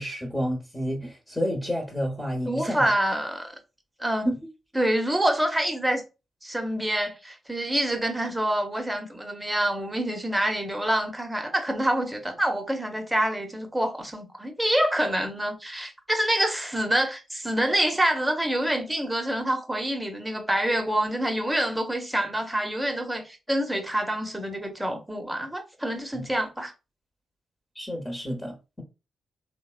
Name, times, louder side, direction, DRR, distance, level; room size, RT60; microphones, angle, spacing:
voice 1, 0.0-2.9 4.2-4.4 26.1-26.2 27.7-28.8, equal, 20° left, 1.0 m, -30 dB
voice 2, 2.5-3.5 4.0-4.3 4.7-6.0 6.4-26.7, right 1 dB, 10° right, 0.8 m, -26 dB
3.0 x 2.1 x 2.4 m
hypercardioid pair, 40°, 0 cm